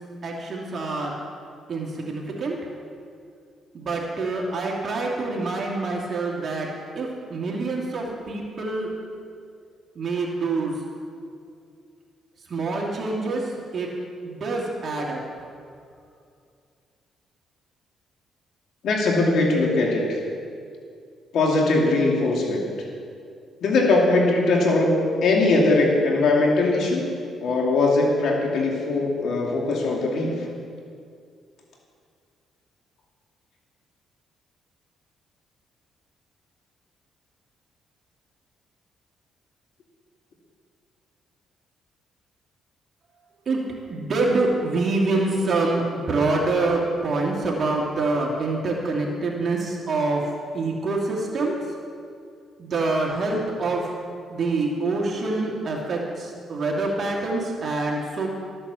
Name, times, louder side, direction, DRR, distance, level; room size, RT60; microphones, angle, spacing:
voice 1, 0.2-1.1 1.7-2.6 3.7-6.7 7.0-8.9 10.0-10.7 12.5-13.4 13.7-13.9 14.2-15.2 43.5-43.6 43.9-50.2 50.5-51.6 52.6-53.9 54.3-58.3, right 3 dB, 45° right, -2 dB, 2.4 m, -26 dB
voice 2, 18.8-20.2 21.3-22.7 23.6-27.1 27.4-30.3, left 2 dB, 70° left, -1 dB, 2.4 m, -20 dB
14.0 x 8.8 x 6.9 m, 2.3 s
cardioid pair, 90°, 0 cm